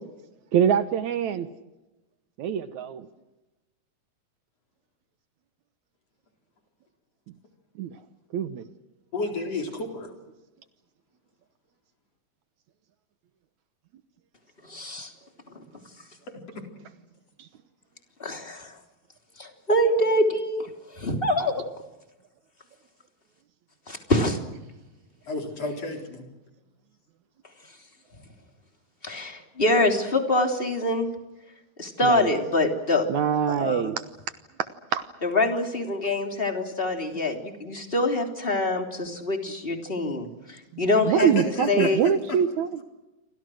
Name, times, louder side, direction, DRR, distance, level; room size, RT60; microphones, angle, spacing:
voice 1, 0.5-1.5 2.4-3.1 7.8-8.0 8.3-8.6 32.0-32.3 33.1-34.0 34.9-35.0 40.7-42.8, right 8 dB, 70° right, 11 dB, 2.3 m, -24 dB
voice 2, 9.1-10.1 25.2-26.3 41.2-42.4, left 3 dB, 50° left, 3 dB, 5.2 m, -32 dB
voice 3, 14.6-15.1 15.5-15.6 18.2-18.8 19.4-21.7 23.9-24.4 29.0-31.1 31.8-33.1 33.5-33.9 35.2-41.3 41.7-42.0, left 1 dB, 15° left, 4 dB, 3.2 m, -25 dB
29.5 x 25.0 x 6.4 m, 1.0 s
omnidirectional pair, 3.7 m